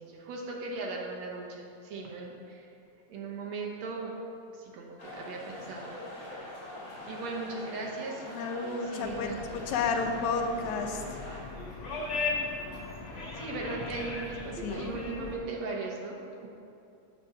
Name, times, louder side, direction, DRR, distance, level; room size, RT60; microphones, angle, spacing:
voice 1, 0.0-2.7 3.1-4.1 4.5-5.9 7.1-8.3 8.7-9.5 13.3-16.5, right 3 dB, 70° right, -2 dB, 2.1 m, -38 dB
sound 1, 5.0-11.4, left 1 dB, 35° left, 2.6 m, -44 dB
voice 2, 8.2-9.3 9.7-11.0 14.6-14.9, left 4 dB, 80° left, 4 dB, 2.1 m, -31 dB
sound 2, 9.0-15.4, left 3 dB, 65° left, 0.7 m, -38 dB
7.5 x 5.1 x 6.9 m, 2.7 s
omnidirectional pair, 3.4 m